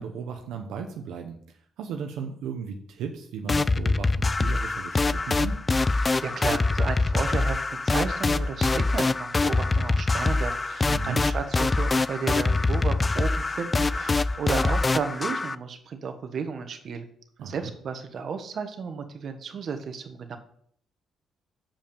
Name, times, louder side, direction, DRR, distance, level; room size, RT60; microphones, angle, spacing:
voice 1, 0.0-5.6 10.9-11.2 17.4-17.7, right 6 dB, 85° right, 4 dB, 0.8 m, -36 dB
sound 1, 3.5-15.6, left 3 dB, 25° left, 0.4 m, -24 dB
voice 2, 6.2-17.1 17.4-20.4, right 5 dB, 55° right, 7 dB, 1.2 m, -33 dB
7.2 x 5.4 x 7.1 m, 0.64 s
cardioid pair, 90°, 0 cm